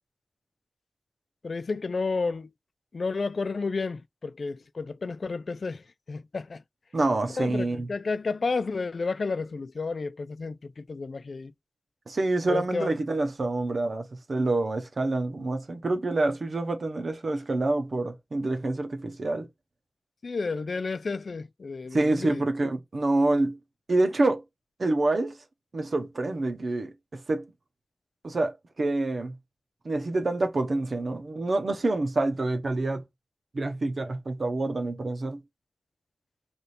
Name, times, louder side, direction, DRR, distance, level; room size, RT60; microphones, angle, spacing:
voice 1, 1.4-2.5 2.9-5.8 6.1-6.6 7.4-11.5 12.5-12.9 20.2-22.4, left 4 dB, 80° left, 0.3 m, -31 dB
voice 2, 6.9-7.9 12.1-19.5 21.9-23.6 23.9-24.4 24.8-25.4 25.7-27.5 28.2-29.3 29.8-33.0 33.5-35.4, right 2 dB, 75° right, 0.8 m, -27 dB
3.4 x 2.6 x 4.1 m
wide cardioid pair, 50°, 0 cm